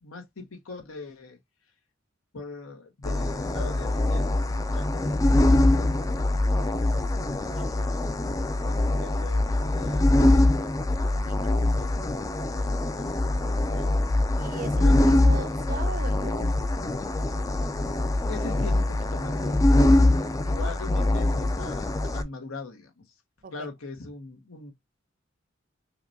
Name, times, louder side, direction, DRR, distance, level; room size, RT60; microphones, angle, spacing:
voice 1, 0.0-1.4 2.3-10.5 11.1-13.9 14.8-15.2 18.3-23.0 23.5-24.7, left 3 dB, 85° left, 1.0 m, -42 dB
sound 1, 3.0-22.2, left 1 dB, 15° left, 0.4 m, -23 dB
voice 2, 14.4-16.5 23.4-23.7, right 5 dB, 40° right, 0.5 m, -38 dB
5.7 x 2.2 x 2.7 m
head